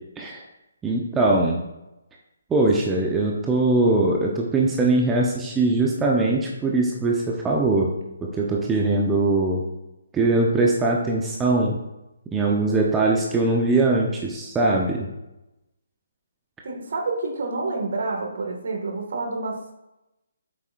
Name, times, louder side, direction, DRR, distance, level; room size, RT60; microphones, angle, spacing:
voice 1, 0.8-1.6 2.5-7.9 8.2-9.6 10.1-11.8 12.3-15.1, right 2 dB, 10° right, -2 dB, 0.9 m, -21 dB
voice 2, 16.6-19.7, right 3 dB, 50° right, 1 dB, 2.0 m, -28 dB
8.7 x 7.5 x 2.6 m, 0.95 s
figure-of-eight pair, 140°, 0 cm